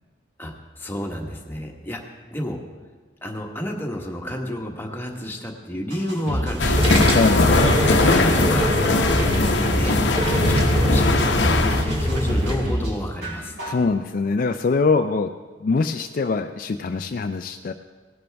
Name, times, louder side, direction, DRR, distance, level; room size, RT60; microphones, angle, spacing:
voice 1, 0.4-2.0 2.3-2.6 3.2-6.9 7.8-10.0 10.5-13.6, equal, 10° left, 1 dB, 1.3 m, -30 dB
sound 1, 5.9-6.9 7.2-7.8 8.3-8.4 8.9-9.9 10.2-10.8 11.3-11.4 11.9-12.9 13.2-13.8 14.2-14.3, equal, 70° right, 4.7 m, -28 dB
sound 2, 6.5-12.5, equal, 30° right, 1.9 m, -23 dB
sound 3, 6.6-11.8, left 2 dB, 85° left, 0.9 m, -20 dB
voice 2, 7.1-7.4 13.6-15.3 15.6-17.7, left 4 dB, 50° left, 7 dB, 0.4 m, -23 dB
18.0 x 10.5 x 3.4 m, 1.4 s
head